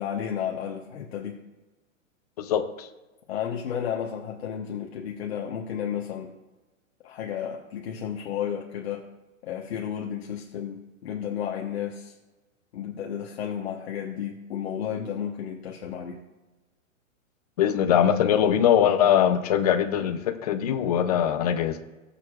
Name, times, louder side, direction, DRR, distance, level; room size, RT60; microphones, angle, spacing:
voice 1, 0.0-1.4 3.3-6.3 7.0-9.0 9.4-12.1 12.7-16.2, left 8 dB, 50° left, 0 dB, 1.2 m, -32 dB
voice 2, 2.4-2.9 17.6-21.8, left 9 dB, 30° left, 7 dB, 0.6 m, -22 dB
20.0 x 6.9 x 2.4 m, 1.1 s
hypercardioid pair, 170°, 39 cm